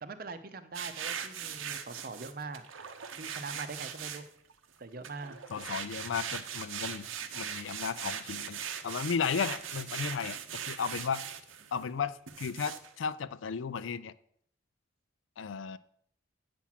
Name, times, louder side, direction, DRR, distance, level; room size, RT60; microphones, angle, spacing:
voice 1, 0.0-2.6 3.1-4.3 4.8-5.4, right 3 dB, 45° right, 10 dB, 0.6 m, -42 dB
sound 1, 0.7-4.5 5.0-11.8 12.3-12.9, right 8 dB, 80° right, 0.8 m, -40 dB
voice 2, 5.5-7.1 7.3-11.2 11.7-14.1 15.4-15.8, left 6 dB, 70° left, 16 dB, 0.4 m, -34 dB
8.5 x 6.0 x 5.8 m, 0.68 s
head